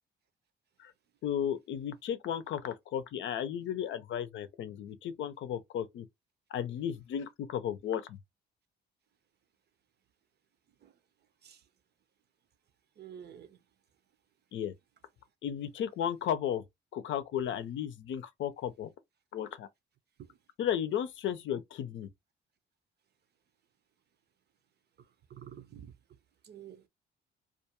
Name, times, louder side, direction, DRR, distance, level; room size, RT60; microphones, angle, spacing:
voice 1, 1.2-6.1 6.5-8.2 14.5-14.7 15.4-16.6 16.9-18.9 19.3-19.7 20.6-22.1, left 9 dB, 70° left, 0.6 m, -34 dB
voice 2, 13.0-13.6 20.3-20.4 25.3-25.9 26.4-26.9, right 9 dB, 55° right, 0.6 m, -49 dB
2.5 x 2.3 x 2.9 m
cardioid pair, 90°, 20 cm